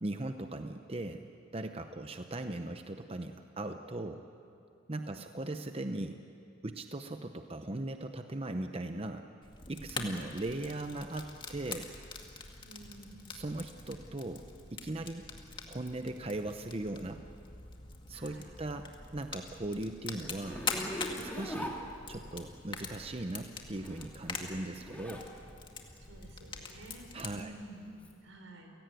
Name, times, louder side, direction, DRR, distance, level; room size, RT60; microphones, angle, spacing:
voice 1, 0.0-4.2 4.9-6.2 6.6-9.2 9.7-11.9 13.3-14.4 14.7-15.2 15.7-17.2 18.1-20.6 21.2-21.8 22.1-25.3 27.1-27.5, right 2 dB, 30° right, 7 dB, 0.8 m, -39 dB
voice 2, 5.0-5.3 9.9-10.3 12.6-13.2 18.1-18.5 26.1-28.7, right 2 dB, 85° right, 4 dB, 4.7 m, -51 dB
Fire, 9.4-27.4, left 4 dB, 25° left, 2.0 m, -44 dB
Zipper (clothing), 20.4-22.5 23.6-25.3 25.7-28.1, equal, 10° left, 2.6 m, -42 dB
30.0 x 17.5 x 9.2 m, 2.6 s
head